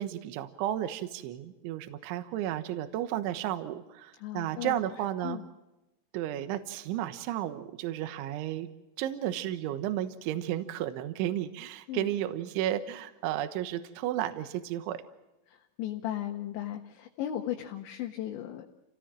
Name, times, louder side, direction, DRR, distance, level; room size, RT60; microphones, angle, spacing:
voice 1, 0.0-5.4 6.1-8.7 9.0-15.0, right 12 dB, 75° right, 11 dB, 3.5 m, -33 dB
voice 2, 4.2-4.7 5.2-5.5 11.9-12.1 15.5-18.8, left 12 dB, 70° left, 2 dB, 3.5 m, -36 dB
28.5 x 18.0 x 7.5 m, 0.99 s
omnidirectional pair, 5.7 m